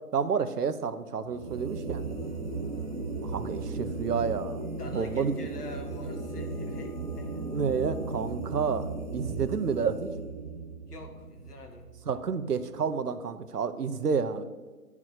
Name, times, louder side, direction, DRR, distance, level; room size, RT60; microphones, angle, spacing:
voice 1, 0.0-2.1 3.2-4.6 4.9-5.3 7.5-10.1 12.1-14.4, right 6 dB, 85° right, 11 dB, 1.0 m, -30 dB
sound 1, 1.3-12.6, right 3 dB, 65° right, 1.5 m, -36 dB
sound 2, 1.8-8.2, left 4 dB, 65° left, 1.2 m, -52 dB
voice 2, 4.8-7.5 10.9-11.9, left 2 dB, 90° left, 4 dB, 2.1 m, -45 dB
9.5 x 4.9 x 7.6 m, 1.3 s
hypercardioid pair, 160°, 45 cm